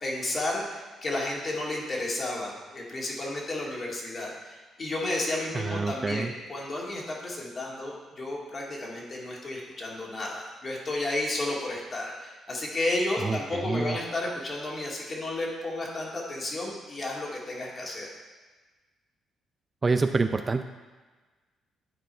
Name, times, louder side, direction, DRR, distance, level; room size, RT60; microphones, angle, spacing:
voice 1, 0.0-18.1, left 2 dB, 40° left, -3 dB, 2.2 m, -32 dB
voice 2, 5.5-6.3 13.2-14.0 19.8-20.6, right 4 dB, 30° right, 8 dB, 0.4 m, -27 dB
11.0 x 4.6 x 4.4 m, 1.3 s
cardioid pair, 90°, 0 cm